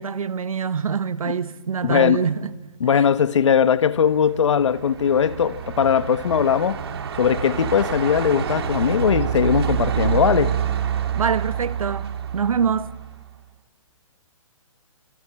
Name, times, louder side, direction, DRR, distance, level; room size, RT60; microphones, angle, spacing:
voice 1, 0.0-2.5 2.9-3.1 11.1-12.9, right 6 dB, 85° right, 1.4 m, -25 dB
voice 2, 1.8-2.2 2.8-6.8 7.2-10.6, left 7 dB, 60° left, 1.4 m, -19 dB
Truck, 3.9-13.3, right 8 dB, 45° right, 2.5 m, -27 dB
28.5 x 27.0 x 7.7 m
hypercardioid pair, 165°, 17 cm